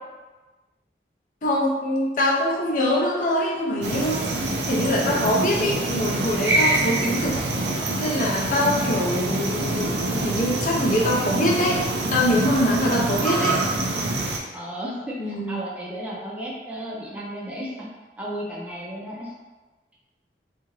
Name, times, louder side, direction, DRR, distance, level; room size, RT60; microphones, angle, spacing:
voice 1, 1.4-4.3 4.7-7.4 7.6-13.6 15.2-15.6, left 1 dB, 45° left, -3 dB, 0.5 m, -24 dB
sound 1, 3.8-14.4, right 2 dB, 80° right, 0.5 m, -25 dB
voice 2, 14.5-17.9 18.2-19.3, equal, 10° right, -6 dB, 0.5 m, -34 dB
2.8 x 2.4 x 3.0 m, 1.2 s
head